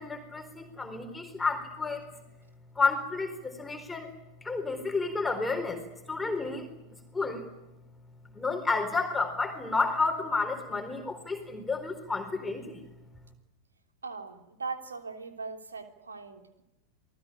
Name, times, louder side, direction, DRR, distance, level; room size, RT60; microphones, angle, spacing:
voice 1, 0.0-2.1 2.7-4.1 4.4-5.8 6.1-6.7 7.1-7.4 8.3-12.8, left 4 dB, 10° left, 5 dB, 4.3 m, -31 dB
voice 2, 14.0-16.6, right 4 dB, 75° right, 6 dB, 3.3 m, -40 dB
28.0 x 19.5 x 10.0 m, 0.96 s
figure-of-eight pair, 90°, 0 cm